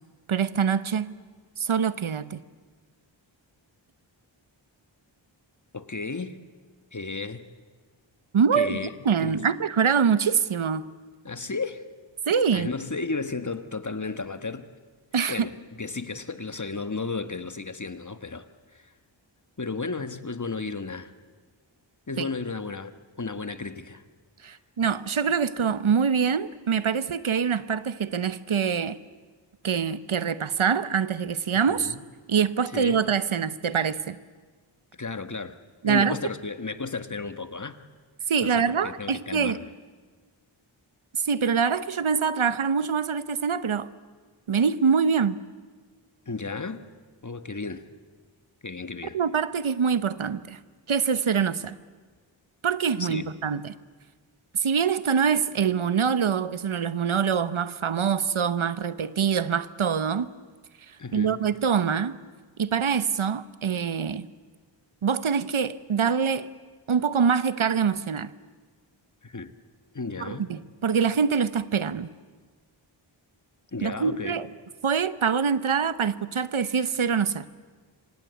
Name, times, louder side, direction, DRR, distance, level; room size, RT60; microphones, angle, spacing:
voice 1, 0.3-1.1 1.6-2.4 8.3-8.8 9.0-10.9 12.3-12.7 15.1-15.5 22.2-22.3 24.4-29.0 29.6-31.9 32.3-34.2 35.8-36.2 38.3-39.6 41.1-43.9 44.5-45.4 49.1-50.6 50.9-51.7 52.6-53.7 54.5-60.3 61.1-62.2 62.6-64.3 65.0-66.5 66.9-68.3 70.2-72.1 73.8-74.5 74.8-77.5, right 6 dB, 85° right, 0.9 m, -24 dB
voice 2, 5.7-6.4 6.9-7.5 8.5-8.9 9.2-9.4 11.2-11.9 12.5-14.7 15.3-18.9 19.6-21.1 22.1-24.0 31.7-32.0 32.7-33.0 35.0-35.6 35.8-37.8 38.4-39.7 46.3-46.8 47.2-47.9 48.6-49.2 53.0-53.3 61.0-61.4 69.2-69.5 69.9-70.5 73.7-74.4, left 4 dB, 40° left, 1.4 m, -34 dB
27.0 x 25.5 x 8.2 m
wide cardioid pair, 65°, 47 cm